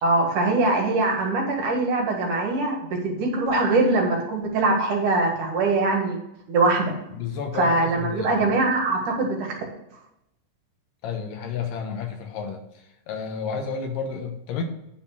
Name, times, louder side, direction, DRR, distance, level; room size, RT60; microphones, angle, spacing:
voice 1, 0.0-6.2 6.5-6.9 7.5-9.5, right 2 dB, 65° right, 0 dB, 3.1 m, -22 dB
voice 2, 7.1-8.5 11.0-12.6 13.1-14.6, left 6 dB, 75° left, 3 dB, 2.9 m, -31 dB
9.6 x 4.4 x 6.0 m, 0.83 s
omnidirectional pair, 4.0 m